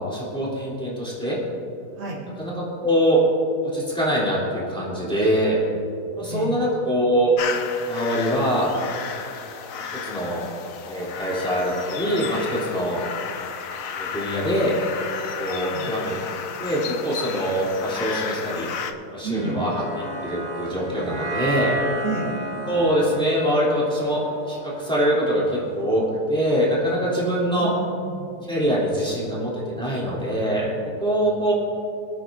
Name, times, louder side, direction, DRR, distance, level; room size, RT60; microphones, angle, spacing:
voice 1, 0.0-1.4 2.4-3.2 3.6-5.6 6.2-7.3 7.8-8.7 9.7-10.5 10.9-13.0 14.0-14.7 15.4-16.1 16.6-18.7 19.1-19.8 20.2-21.8 22.6-24.2 24.5-26.0 26.3-27.7 28.4-30.7 31.0-31.5, equal, 5° left, -7 dB, 3.1 m, -23 dB
sound 1, 7.4-18.9, left 7 dB, 60° left, 1.0 m, -33 dB
voice 2, 19.2-19.7 22.0-22.4 27.6-28.4 29.2-29.3, right 4 dB, 85° right, -4 dB, 2.9 m, -31 dB
sound 2, 19.3-25.7, equal, 20° right, 1.9 m, -32 dB
25.0 x 9.3 x 2.6 m, 2.7 s
omnidirectional pair, 2.0 m